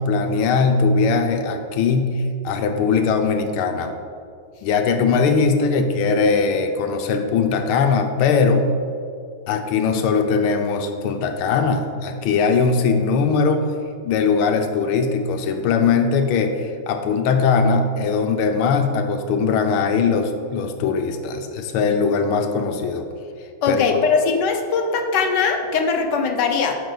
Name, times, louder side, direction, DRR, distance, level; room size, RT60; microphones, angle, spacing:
voice 1, 0.0-3.9 4.6-8.7 9.5-13.6 14.0-23.1 23.7-24.0, left 5 dB, 85° left, 5 dB, 1.5 m, -20 dB
voice 2, 23.6-26.8, left 5 dB, 65° left, 4 dB, 1.3 m, -20 dB
10.5 x 6.3 x 3.9 m, 2.4 s
omnidirectional pair, 2.3 m